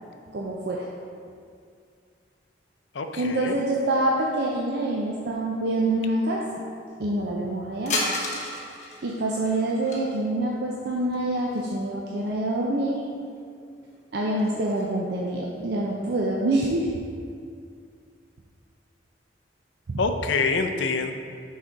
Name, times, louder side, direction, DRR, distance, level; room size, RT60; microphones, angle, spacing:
voice 1, 0.3-0.9 3.2-6.6 7.0-8.1 9.0-13.0 14.1-16.9 19.9-20.0, right 1 dB, 60° right, -3 dB, 0.6 m, -26 dB
voice 2, 2.9-3.6 20.0-21.1, left 4 dB, 80° left, 6 dB, 0.5 m, -26 dB
sound 1, 7.9-10.0 11.1-11.9 12.2-12.3 13.3-13.4 13.8-14.9, left 2 dB, 40° left, 1.0 m, -33 dB
6.2 x 4.1 x 4.6 m, 2.2 s
head